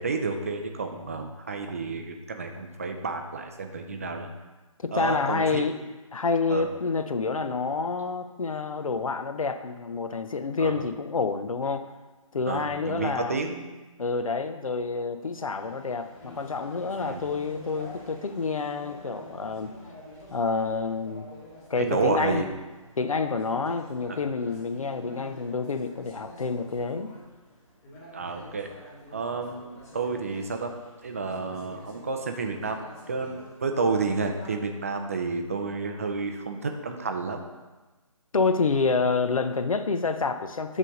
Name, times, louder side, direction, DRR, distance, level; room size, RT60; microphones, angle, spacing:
voice 1, 0.0-4.3 4.9-5.6 6.5-6.7 10.6-10.8 12.5-13.6 17.0-17.2 21.8-22.5 28.1-28.7 29.1-30.7 31.0-37.4, right 4 dB, 25° right, 4 dB, 0.4 m, -30 dB
voice 2, 4.8-5.7 6.1-11.9 12.3-13.4 14.0-19.7 20.3-21.3 21.7-22.5 23.0-27.1 38.3-40.8, left 4 dB, 70° left, 9 dB, 0.6 m, -28 dB
sound 1, 15.6-34.5, left 1 dB, 25° left, 1.8 m, -48 dB
7.4 x 3.3 x 5.2 m, 1.2 s
figure-of-eight pair, 145°, 18 cm